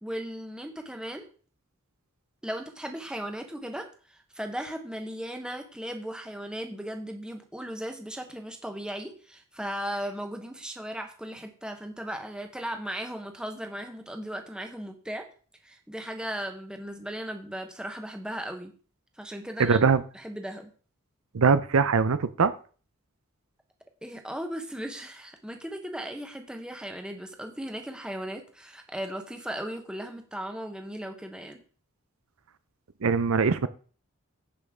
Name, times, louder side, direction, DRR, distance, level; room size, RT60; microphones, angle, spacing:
voice 1, 0.0-1.3 2.4-15.3 15.6-18.7 19.2-19.8 20.1-20.7 24.0-31.6, equal, 5° right, 4 dB, 1.1 m, -37 dB
voice 2, 19.6-20.0 21.3-22.5 33.0-33.7, right 5 dB, 75° right, 13 dB, 0.6 m, -22 dB
15.5 x 5.4 x 3.7 m, 0.40 s
head